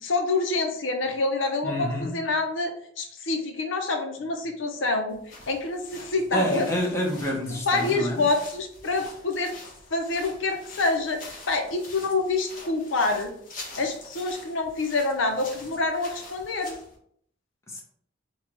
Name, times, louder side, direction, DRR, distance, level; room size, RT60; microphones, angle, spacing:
voice 1, 0.0-2.7 3.0-6.7 7.6-9.5 9.9-13.3 13.8-16.8, left 3 dB, 85° left, 4 dB, 0.7 m, -27 dB
voice 2, 1.6-2.2 6.3-8.3 17.7-17.8, equal, 15° left, -2 dB, 0.9 m, -28 dB
sound 1, 5.1-17.0, left 2 dB, 45° left, 1.0 m, -45 dB
4.5 x 2.3 x 4.4 m, 0.66 s
head